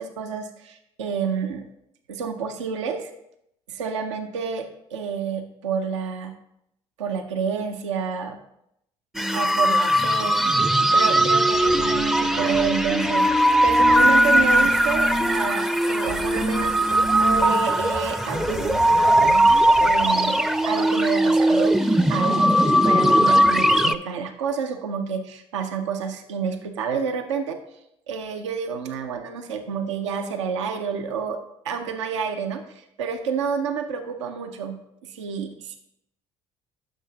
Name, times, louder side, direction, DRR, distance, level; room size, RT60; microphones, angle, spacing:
voice 1, 0.0-1.7 2.1-3.1 3.7-6.3 7.0-8.4 9.3-10.4 10.9-19.5 19.8-27.6 28.1-31.4 31.6-35.8, right 6 dB, 90° right, 6 dB, 0.6 m, -29 dB
sound 1, 9.1-23.9, right 1 dB, 5° right, 0.4 m, -19 dB
sound 2, 11.5-20.5, right 6 dB, 65° right, 2.4 m, -38 dB
9.8 x 6.3 x 2.8 m, 0.79 s
hypercardioid pair, 60°, 15 cm